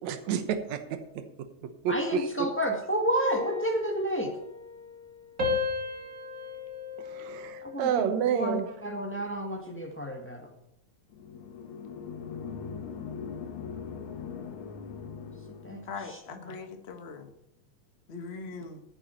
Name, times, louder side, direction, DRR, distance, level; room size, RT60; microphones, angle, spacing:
voice 1, 0.0-0.8 1.1-1.2 1.8-2.5 7.0-8.7, right 8 dB, 70° right, 8 dB, 2.3 m, -29 dB
voice 2, 1.9-4.3 7.6-10.5 15.6-15.8 16.5-16.6, right 1 dB, 10° left, 2 dB, 0.6 m, -30 dB
sound 1, 3.2-5.1 5.4-8.0 8.4-8.8, left 4 dB, 30° right, 2.3 m, -35 dB
sound 2, 11.1-16.1, left 6 dB, 85° left, 2.3 m, -40 dB
voice 3, 15.9-17.3 18.1-18.8, left 4 dB, 65° left, 5 dB, 0.6 m, -41 dB
14.0 x 8.7 x 4.5 m, 0.84 s
omnidirectional pair, 3.4 m